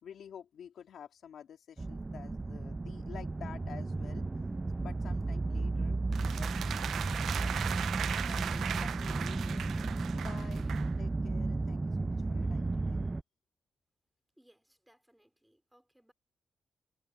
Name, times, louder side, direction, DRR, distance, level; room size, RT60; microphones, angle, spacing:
voice 1, 0.0-4.3 4.8-9.6 10.1-10.7 11.0-13.0, left 8 dB, 85° left, 2.9 m, -51 dB
sound 1, 1.8-13.2, right 3 dB, 20° right, 0.4 m, -34 dB
sound 2, 6.1-10.9, right 9 dB, 90° right, 0.5 m, -38 dB
voice 2, 14.4-16.1, right 1 dB, 5° right, 5.0 m, -66 dB
wide cardioid pair, 160°, 0 cm